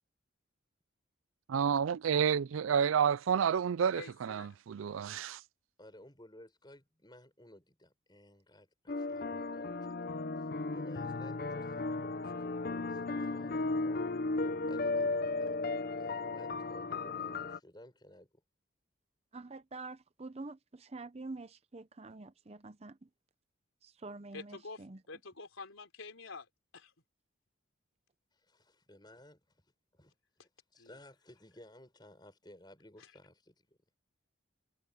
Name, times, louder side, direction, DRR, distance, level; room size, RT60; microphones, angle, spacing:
voice 1, 1.5-5.4, right 7 dB, 80° right, 0.4 m, -30 dB
voice 2, 3.9-4.6 24.3-26.5 26.7-26.9 30.8-31.0, left 3 dB, 85° left, 4.2 m, -48 dB
voice 3, 5.8-14.1 14.6-15.6 16.0-18.3 28.3-29.6 29.9-33.8, left 1 dB, 20° left, 6.8 m, -57 dB
sound 1, 8.9-17.6, left 3 dB, 45° left, 0.6 m, -35 dB
voice 4, 19.3-22.9 23.8-25.0, right 3 dB, 30° right, 0.6 m, -46 dB
head